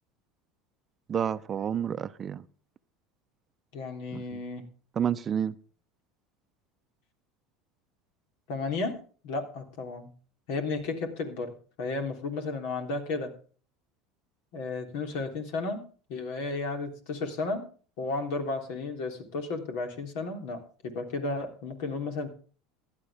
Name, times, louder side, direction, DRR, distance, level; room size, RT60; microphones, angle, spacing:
voice 1, 1.1-2.4 4.1-4.4 5.0-5.6, right 8 dB, 35° right, 0.7 m, -30 dB
voice 2, 3.7-4.6 8.5-8.9 9.2-10.1 10.5-11.5 11.8-13.3 14.5-15.8 16.1-17.7 18.0-22.3, left 3 dB, 70° left, 3.4 m, -33 dB
16.0 x 11.5 x 3.6 m
hypercardioid pair, 85°, 0 cm